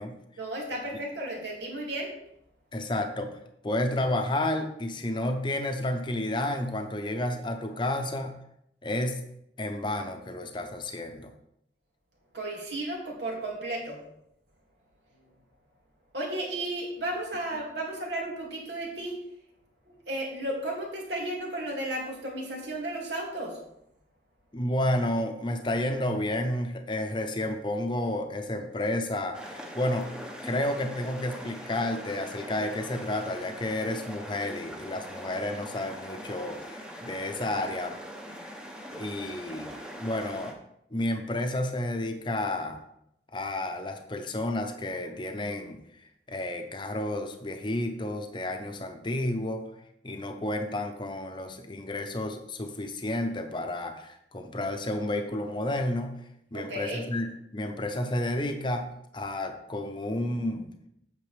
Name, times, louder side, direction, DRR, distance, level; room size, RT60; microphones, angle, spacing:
voice 1, 0.4-2.1 12.3-14.0 16.1-19.2 19.9-23.6 56.5-57.0, right 1 dB, 85° right, -2 dB, 2.5 m, -34 dB
voice 2, 2.7-3.4 3.6-8.4 8.8-9.2 9.6-11.3 24.5-30.2 30.4-38.0 38.3-38.4 38.9-39.7 40.0-40.5 40.9-42.8 43.3-45.8 46.3-49.7 50.0-56.2 56.5-60.8, left 1 dB, 25° left, 6 dB, 0.8 m, -31 dB
sound 1, 29.3-40.5, equal, 5° right, 0.9 m, -42 dB
8.7 x 6.6 x 3.4 m, 0.78 s
head